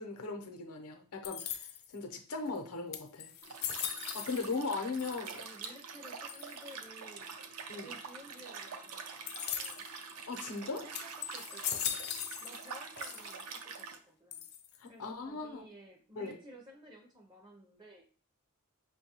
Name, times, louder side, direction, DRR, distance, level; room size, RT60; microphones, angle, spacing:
voice 1, 0.0-1.7 1.9-3.3 4.1-5.3 7.7-8.0 10.3-10.8 14.8-15.7 16.2-16.4, left 3 dB, 85° left, 4 dB, 0.7 m, -38 dB
sound 1, 1.2-2.0 2.6-2.7 2.9-4.7 4.9-5.6 6.3-6.7 9.3-9.9 10.5-10.6 10.9-12.7 13.0-13.6 14.3-14.9, left 9 dB, 45° left, 0.3 m, -39 dB
Liquid, 3.4-14.0, right 5 dB, 85° right, 0.5 m, -45 dB
voice 2, 5.3-7.3 7.8-9.8 10.6-12.0 12.4-14.5 14.9-18.1, right 1 dB, 20° right, 1 dB, 0.4 m, -55 dB
5.2 x 2.2 x 2.8 m, 0.43 s
head